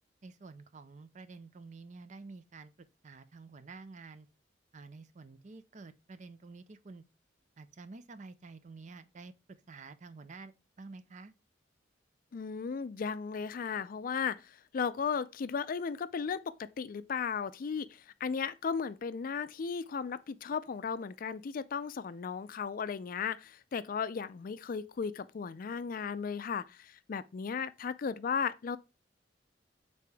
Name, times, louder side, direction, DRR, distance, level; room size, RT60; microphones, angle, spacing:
voice 1, 0.2-2.7 3.0-4.3 4.7-7.0 7.6-9.3 9.7-11.3, right 3 dB, 45° right, 0.5 m, -50 dB
voice 2, 12.3-28.8, left 6 dB, 50° left, 0.4 m, -35 dB
6.7 x 4.1 x 3.4 m
head